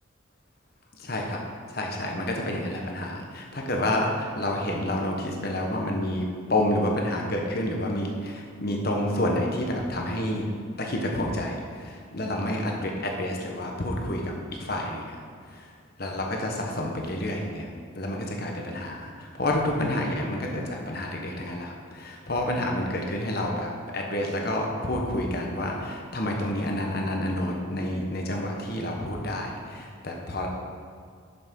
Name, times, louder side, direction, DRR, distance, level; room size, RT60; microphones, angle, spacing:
voice 1, 0.9-1.4 1.7-10.5 10.8-15.2 15.5-15.7 16.0-17.7 17.9-30.5, left 1 dB, 45° left, 0 dB, 1.2 m, -29 dB
7.1 x 6.5 x 5.3 m, 2.1 s
head